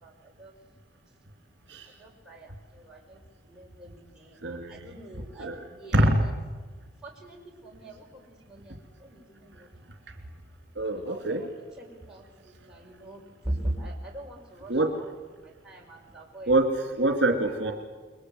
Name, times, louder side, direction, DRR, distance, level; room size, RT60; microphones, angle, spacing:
voice 1, 0.0-0.5 2.0-3.2 3.5-5.5 5.8-6.1 7.0-7.4 7.6-9.7 10.9-11.5 12.1-14.7 15.6-16.5, right 1 dB, 5° right, -4 dB, 6.0 m, -40 dB
voice 2, 4.4-5.0 5.4-5.7 5.9-6.2 10.7-11.5 14.7-14.9 16.5-17.7, right 1 dB, 60° right, 4 dB, 3.1 m, -25 dB
29.5 x 22.5 x 8.1 m, 1.4 s
head